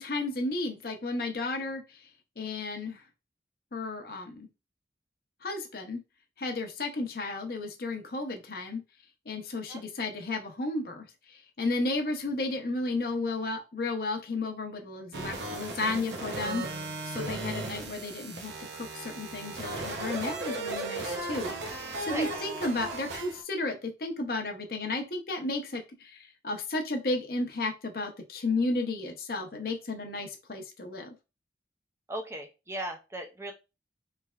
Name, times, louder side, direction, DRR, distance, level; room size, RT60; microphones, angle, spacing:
voice 1, 0.0-2.1 2.4-3.0 3.7-4.5 5.4-6.0 6.4-8.8 9.3-16.6 17.0-21.5 22.0-31.1, left 2 dB, 55° left, 4 dB, 0.7 m, -33 dB
sound 1, 15.1-23.4, right 2 dB, 85° right, 0.7 m, -36 dB
voice 2, 22.1-22.5 32.1-33.5, right 1 dB, 15° right, 3 dB, 0.4 m, -37 dB
3.2 x 3.2 x 2.3 m, 0.28 s
head